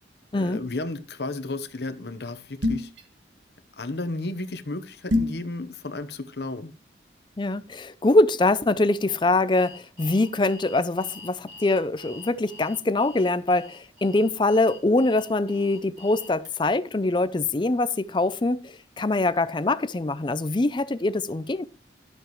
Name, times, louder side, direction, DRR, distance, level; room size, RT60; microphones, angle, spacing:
voice 1, 0.3-2.9 3.8-6.7, left 2 dB, 65° left, 1.0 m, -33 dB
sound 1, 2.6-3.0 5.1-5.4, left 2 dB, 85° right, 1.7 m, -24 dB
voice 2, 7.4-21.6, left 2 dB, 25° left, 0.5 m, -23 dB
Alarm, 9.6-16.5, left 3 dB, 25° right, 3.7 m, -46 dB
12.5 x 8.0 x 3.1 m
head